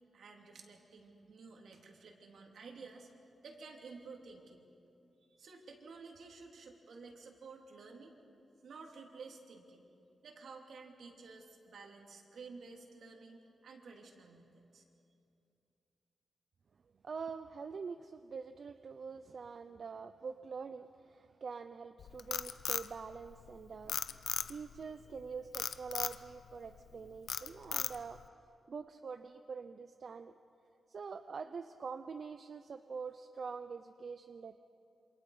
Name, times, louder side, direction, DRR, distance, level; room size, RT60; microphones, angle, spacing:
voice 1, 0.1-3.1 3.4-4.7 5.4-8.2 8.6-9.9 10.2-14.8, right 4 dB, 65° right, 1 dB, 3.0 m, -52 dB
voice 2, 17.0-24.2 24.5-28.2 28.7-30.3 30.9-34.6, right 5 dB, 45° right, 9 dB, 0.5 m, -45 dB
Frog, 22.0-23.5 23.9-24.8 25.5-26.2 26.7-26.9 27.3-28.2, left 8 dB, 85° left, 0.6 m, -36 dB
28.0 x 26.5 x 4.9 m, 2.6 s
wide cardioid pair, 175°, 0 cm